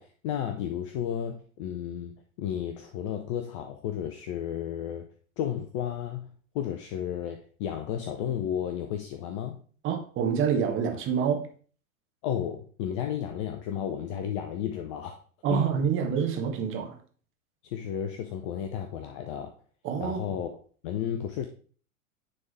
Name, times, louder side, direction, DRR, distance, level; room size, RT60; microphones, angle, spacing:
voice 1, 0.0-5.1 5.4-9.6 12.2-15.2 15.5-15.7 17.6-19.5 20.0-20.5 20.8-21.5, left 9 dB, 25° left, 0.3 m, -33 dB
voice 2, 9.8-11.5 15.4-17.0 19.8-20.4, right 7 dB, 30° right, 1.2 m, -27 dB
9.3 x 3.5 x 3.3 m
figure-of-eight pair, 95°, 42 cm